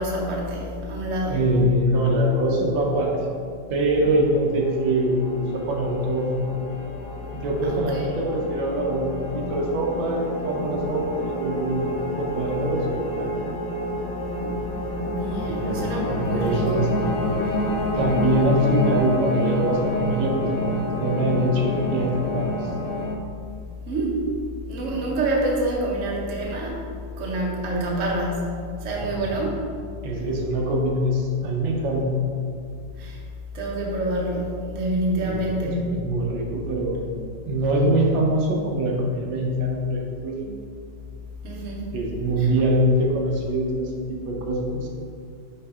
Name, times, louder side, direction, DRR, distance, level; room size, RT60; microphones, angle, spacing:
voice 1, 0.0-1.4 7.6-8.2 13.5-13.6 15.0-17.0 23.8-24.3 24.7-26.8 27.2-29.6 33.0-33.2 33.5-36.1 41.4-41.9 42.4-42.5, right 1 dB, 45° right, -3 dB, 1.2 m, -27 dB
voice 2, 1.3-3.2 3.7-6.5 7.3-11.9 12.2-13.5 15.5-17.2 18.0-22.5 29.0-29.3 30.0-32.1 35.3-37.1 37.5-40.6 41.9-44.9, right 1 dB, 80° right, -1 dB, 1.5 m, -24 dB
sound 1, 4.1-23.2, left 1 dB, 70° left, 0.8 m, -29 dB
5.5 x 5.1 x 3.6 m, 2.3 s
omnidirectional pair, 2.1 m